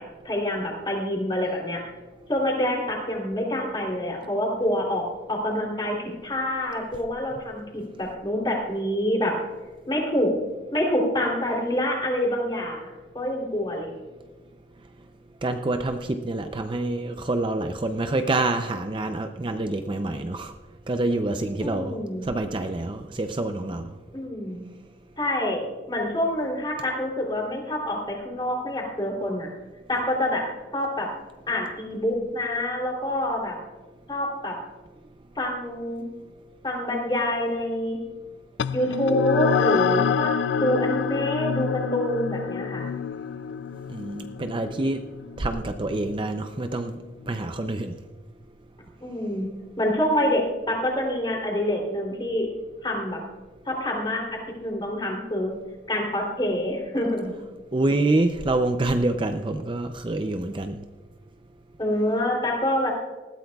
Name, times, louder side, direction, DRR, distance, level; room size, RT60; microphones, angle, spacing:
voice 1, 0.0-1.9 2.3-5.0 5.3-9.4 9.9-10.3 10.7-13.9 21.6-22.3 24.1-24.6 25.2-25.6 25.9-29.5 29.9-30.4 30.7-31.1 31.5-33.6 34.1-34.6 35.3-36.0 36.6-38.0 38.7-40.3 40.6-42.8 49.0-49.5 49.8-52.5 52.8-53.2 53.6-55.5 55.9-57.3 61.8-62.9, left 1 dB, 25° left, -1 dB, 3.1 m, -26 dB
voice 2, 15.4-20.5 20.9-23.9 43.9-45.0 45.4-47.0 47.3-48.0 57.7-60.8, right 2 dB, 25° right, 7 dB, 0.5 m, -26 dB
sound 1, 38.6-47.4, left 7 dB, 75° left, 0.4 m, -27 dB
19.5 x 14.0 x 2.3 m, 1.3 s
head